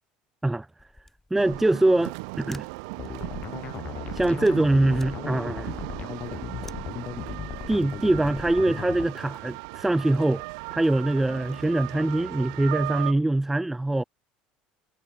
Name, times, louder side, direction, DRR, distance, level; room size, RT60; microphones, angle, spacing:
sound 1, 0.8-7.5, left 2 dB, 10° left, 1.5 m, -53 dB
voice 1, 1.3-2.7 4.1-5.7 7.7-10.4 10.7-14.0, right 2 dB, 10° right, 0.5 m, -23 dB
sound 2, 1.4-13.1, right 30 dB, 80° right, 0.8 m, -37 dB
sound 3, 3.0-9.1, left 9 dB, 45° left, 1.3 m, -37 dB
supercardioid pair, 85°, 3 cm